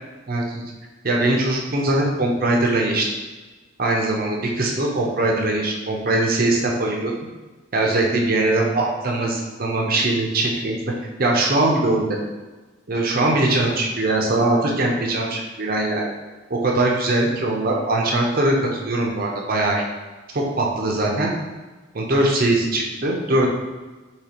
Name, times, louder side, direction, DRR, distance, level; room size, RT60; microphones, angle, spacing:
voice 1, 0.3-0.6 1.0-3.1 3.8-7.1 7.7-10.8 11.2-12.2 12.9-16.1 16.5-19.8 20.3-21.3 21.9-23.5, right 2 dB, 45° right, -1 dB, 0.7 m, -21 dB
5.0 x 3.1 x 3.0 m, 1.3 s
head